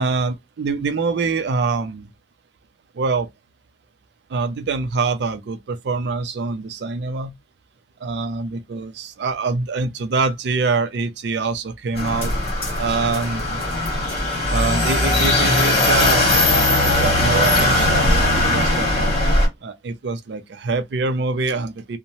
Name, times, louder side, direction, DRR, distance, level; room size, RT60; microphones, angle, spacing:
voice 1, 0.0-2.1 3.0-3.3 4.3-7.3 8.0-12.3 12.8-13.6 14.5-16.2 16.8-19.1 19.6-22.0, right 4 dB, 70° right, 0.4 m, -24 dB
sound 1, 12.0-19.5, left 1 dB, 35° left, 1.3 m, -19 dB
2.6 x 2.1 x 2.9 m
head